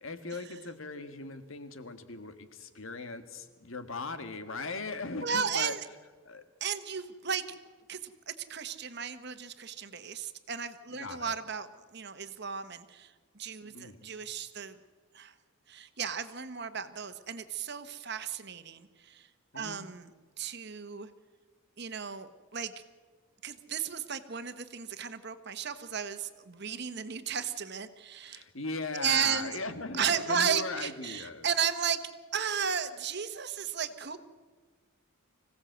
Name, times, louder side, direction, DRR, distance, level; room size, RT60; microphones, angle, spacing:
voice 1, 0.0-5.7 6.2-6.4 10.9-11.4 13.7-14.0 19.5-19.9 28.2-31.5, left 3 dB, 70° left, 10 dB, 1.7 m, -39 dB
voice 2, 5.2-5.9 6.6-7.6 7.9-11.7 11.9-14.8 15.1-15.3 15.7-19.3 19.5-20.1 20.4-21.1 21.8-22.7 23.4-28.4 28.9-29.5 29.9-32.0 32.3-34.2, right 7 dB, 50° right, 10 dB, 1.3 m, -34 dB
25.5 x 16.5 x 8.0 m, 1.4 s
head